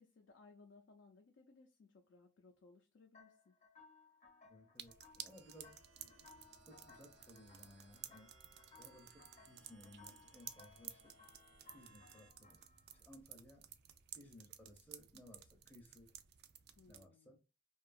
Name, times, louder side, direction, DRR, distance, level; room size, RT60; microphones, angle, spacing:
voice 1, 0.0-3.5 16.8-17.4, left 3 dB, 65° left, 2 dB, 0.4 m, -64 dB
sound 1, 3.1-13.0, left 4 dB, 40° left, 0.7 m, -64 dB
voice 2, 4.4-8.3 8.8-11.1 11.7-12.6 12.9-13.6 14.1-16.1 16.9-17.4, left 1 dB, 10° left, -1 dB, 0.5 m, -60 dB
sound 2, 4.8-17.1, right 11 dB, 55° right, 0.3 m, -55 dB
sound 3, 5.3-12.3, right 3 dB, 75° right, 0.8 m, -68 dB
2.7 x 2.3 x 2.4 m, 0.29 s
head